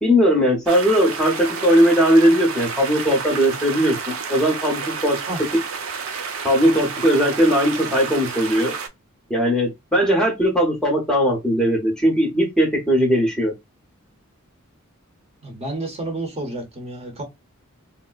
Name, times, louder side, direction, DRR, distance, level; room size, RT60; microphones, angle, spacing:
voice 1, 0.0-5.2 6.4-8.7 9.3-13.5, equal, 5° left, 0.8 m, -19 dB
sound 1, 0.7-8.9, right 5 dB, 70° right, 0.6 m, -30 dB
voice 2, 15.4-17.2, right 2 dB, 30° right, 0.8 m, -30 dB
3.6 x 2.1 x 2.3 m
head